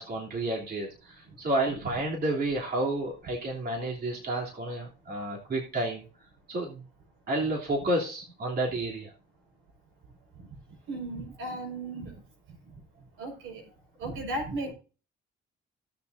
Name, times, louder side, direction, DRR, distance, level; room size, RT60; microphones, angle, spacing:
voice 1, 0.0-6.0 6.5-6.8 7.3-9.1, right 1 dB, 50° right, -2 dB, 3.1 m, -30 dB
voice 2, 10.9-12.1 13.2-13.6 14.0-14.7, right 2 dB, 90° right, 2 dB, 5.4 m, -35 dB
17.5 x 6.9 x 2.7 m, 0.35 s
cardioid pair, 90°, 20 cm